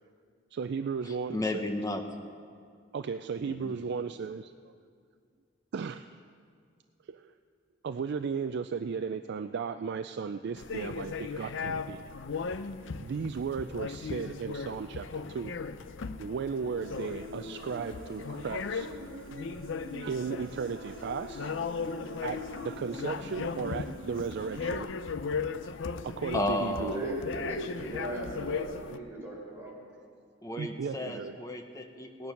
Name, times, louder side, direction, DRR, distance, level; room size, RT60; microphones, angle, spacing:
voice 1, 0.5-1.7 2.9-4.7 5.7-6.2 7.1-7.3 7.8-12.1 12.8-15.5 16.2-18.9 20.0-21.5 22.2-24.9 26.0-27.2 30.6-31.4, right 5 dB, 60° right, 9 dB, 0.4 m, -35 dB
voice 2, 1.0-2.0 3.4-3.7 26.3-27.0 30.4-32.3, left 1 dB, 20° left, 4 dB, 1.0 m, -33 dB
sound 1, 10.6-29.0, left 5 dB, 70° left, 0.5 m, -37 dB
Human voice, 16.8-24.8, equal, 80° right, 1.1 m, -45 dB
voice 3, 26.8-29.8, right 1 dB, 15° right, -6 dB, 4.5 m, -37 dB
18.0 x 9.5 x 5.8 m, 2.2 s
head